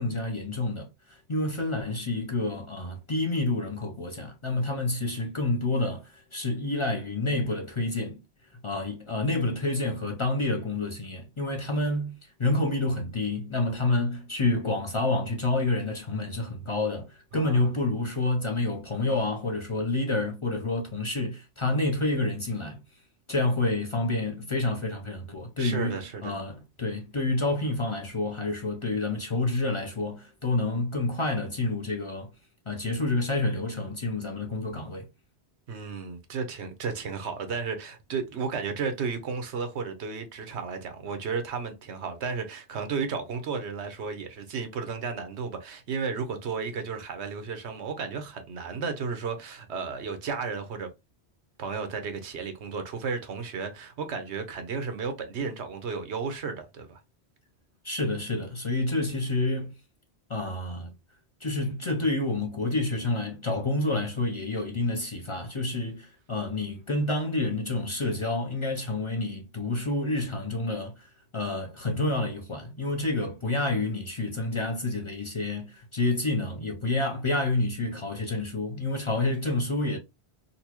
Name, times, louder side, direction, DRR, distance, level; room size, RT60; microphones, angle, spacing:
voice 1, 0.0-8.2 8.6-22.8 23.3-32.3 32.7-35.1 57.8-59.7 60.3-60.9 61.4-80.0, left 2 dB, 35° left, 0.6 m, -28 dB
voice 2, 17.3-17.7 25.6-26.3 35.7-50.9 51.6-57.0, right 5 dB, 85° right, 1.1 m, -33 dB
4.0 x 2.3 x 2.9 m
omnidirectional pair, 1.1 m